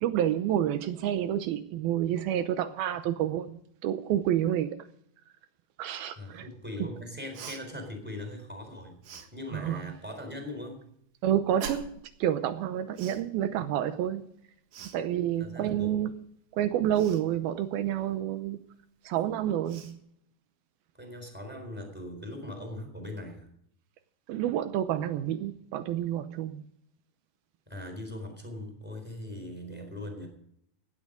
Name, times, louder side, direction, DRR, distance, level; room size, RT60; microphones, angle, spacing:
voice 1, 0.0-4.8 5.8-6.5 9.5-9.8 11.2-11.9 12.2-14.2 14.9-16.2 16.5-18.6 19.1-20.0 24.3-26.6, right 11 dB, 80° right, 2.3 m, -29 dB
voice 2, 6.1-9.0 9.3-10.8 15.4-15.9 20.9-23.5 27.7-30.3, left 1 dB, 5° right, 3.3 m, -40 dB
Cough, 7.3-7.6 9.0-9.3 11.6-12.0 12.9-13.2 14.7-15.0 16.9-17.2 19.1-19.2 19.6-20.0, right 7 dB, 60° right, 2.8 m, -41 dB
16.5 x 11.0 x 5.1 m
omnidirectional pair, 5.0 m